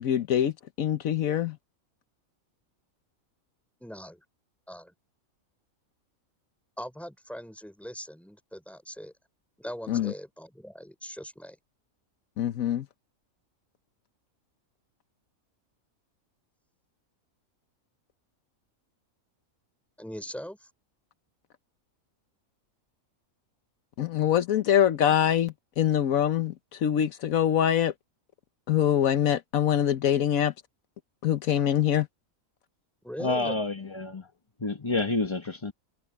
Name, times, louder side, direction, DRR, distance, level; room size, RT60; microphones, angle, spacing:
voice 1, 0.0-1.6 9.9-10.1 12.4-12.9 24.0-27.9 28.7-30.5 31.2-32.1, left 10 dB, 75° left, 1.2 m, -24 dB
voice 2, 3.8-4.2 4.7-4.9 6.8-9.1 9.6-11.6 20.0-20.7 33.0-33.6, equal, ahead, 4.0 m, -40 dB
voice 3, 33.2-34.3 34.6-35.7, left 3 dB, 20° left, 1.1 m, -29 dB
omnidirectional pair, 1.5 m